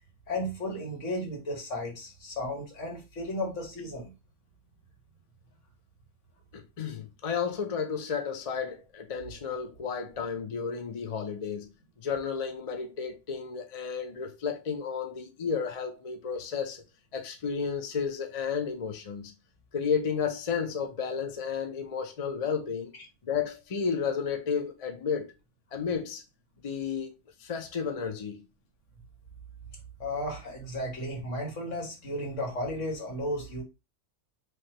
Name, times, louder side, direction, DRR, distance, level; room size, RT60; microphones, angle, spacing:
voice 1, 0.3-4.1 30.0-33.6, left 1 dB, 75° left, 1.8 m, -34 dB
voice 2, 6.5-11.7 12.0-16.8 17.1-19.3 19.7-22.9 23.2-25.3 25.7-26.2 26.6-27.1 27.4-28.4, left 6 dB, 40° left, 0.6 m, -32 dB
4.8 x 2.9 x 2.9 m
omnidirectional pair, 1.3 m